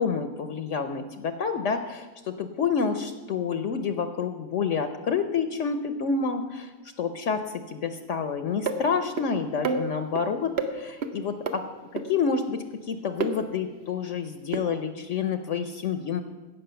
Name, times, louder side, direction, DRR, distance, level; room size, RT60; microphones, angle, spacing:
voice 1, 0.0-6.7 7.0-11.7 11.9-16.2, left 6 dB, 60° left, 9 dB, 1.0 m, -28 dB
sound 1, 8.7-8.8 9.2-9.3 9.6-10.2 10.6-10.7 11.0-11.1 11.5-11.6 12.0-12.1 13.2-13.3 14.5-14.6, right 5 dB, 55° right, 1.0 m, -28 dB
17.0 x 6.0 x 6.9 m, 1.3 s
omnidirectional pair, 1.5 m